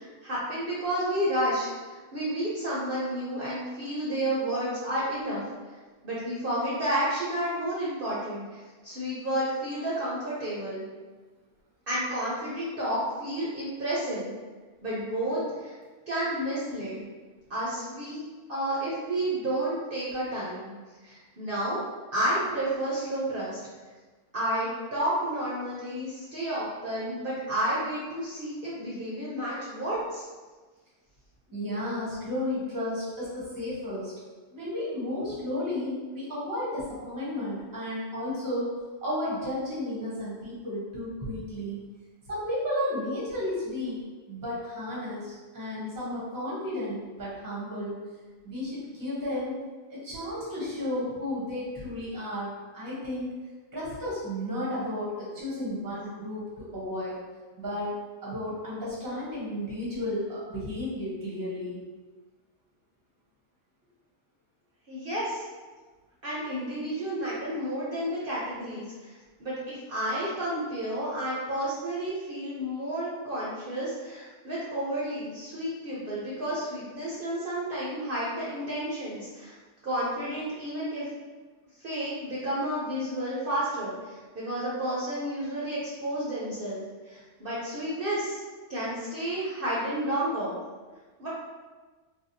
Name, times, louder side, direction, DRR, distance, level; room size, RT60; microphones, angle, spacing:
voice 1, 0.0-5.4 6.0-10.8 11.9-14.3 14.8-15.7 16.1-17.0 17.5-18.2 18.5-20.7 21.0-21.8 22.1-23.6 24.3-30.3 64.9-65.4 66.2-79.6 79.8-81.0 81.8-88.4 88.7-90.5 91.2-91.3, right 1 dB, 50° right, -8 dB, 0.8 m, -31 dB
voice 2, 31.5-34.1 34.5-38.7 39.0-41.8 42.3-44.0 44.3-48.0 48.4-49.6 49.9-53.3 53.7-57.2 57.6-57.9 58.2-61.8, left 1 dB, 20° right, -7 dB, 0.8 m, -33 dB
3.4 x 2.3 x 2.6 m, 1.3 s
omnidirectional pair, 1.3 m